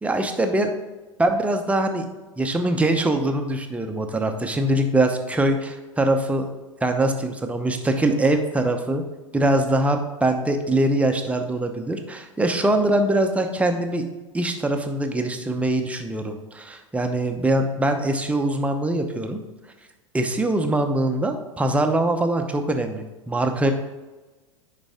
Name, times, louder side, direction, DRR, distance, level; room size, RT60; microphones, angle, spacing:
voice 1, 0.0-0.7 1.2-2.1 2.4-6.5 6.8-9.0 9.3-14.0 14.3-19.4 20.1-23.7, right 1 dB, 10° right, 5 dB, 0.8 m, -23 dB
10.0 x 4.1 x 3.6 m, 1.2 s
figure-of-eight pair, 90°, 17 cm